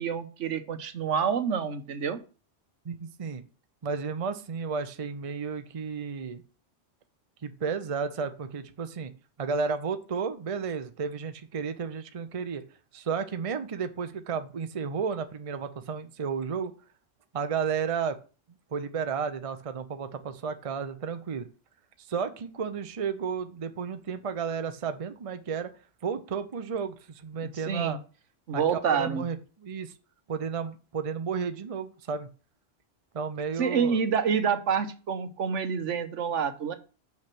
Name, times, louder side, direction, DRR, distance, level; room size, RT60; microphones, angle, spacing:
voice 1, 0.0-2.2 27.7-28.0 28.5-29.2 33.6-36.7, right 6 dB, 75° right, 10 dB, 1.2 m, -27 dB
voice 2, 2.8-3.4 3.8-6.4 7.4-9.1 9.4-12.6 12.9-16.7 17.3-18.2 18.7-21.5 22.1-25.7 26.0-28.0 28.5-29.9 30.3-32.3 33.1-34.0, right 6 dB, 35° right, 9 dB, 0.6 m, -32 dB
5.9 x 5.9 x 6.0 m, 0.36 s
omnidirectional pair, 1.3 m